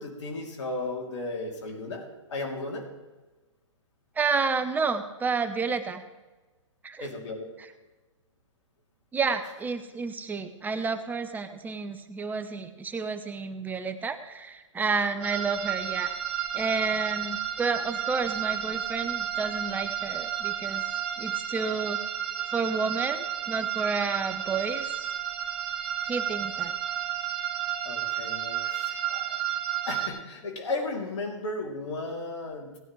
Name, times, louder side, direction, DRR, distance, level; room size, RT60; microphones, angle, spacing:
voice 1, 0.0-2.8 7.0-7.4 27.8-29.4 29.8-32.7, left 2 dB, 65° left, 1 dB, 3.0 m, -35 dB
voice 2, 4.2-6.0 6.8-7.1 9.1-16.1 16.5-20.8 21.2-22.0 22.5-25.0 26.1-26.7, right 4 dB, 10° right, 10 dB, 0.8 m, -30 dB
sound 1, 15.2-30.1, right 10 dB, 45° right, 2.4 m, -32 dB
18.0 x 9.6 x 3.2 m, 1.2 s
hypercardioid pair, 125°, 16 cm